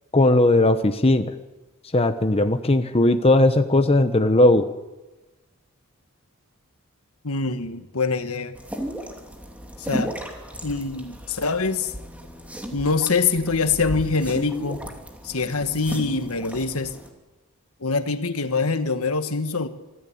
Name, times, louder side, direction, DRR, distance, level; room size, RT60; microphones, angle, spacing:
voice 1, 0.1-1.3 1.9-4.7, left 2 dB, 25° left, 8 dB, 1.0 m, -18 dB
voice 2, 7.2-8.6 9.8-10.1 10.6-11.9 12.7-14.8 15.2-17.0 17.8-19.7, left 4 dB, 70° left, 9 dB, 1.5 m, -24 dB
sound 1, 8.5-17.1, equal, 5° right, 2.7 m, -35 dB
26.0 x 14.5 x 8.6 m, 1.1 s
head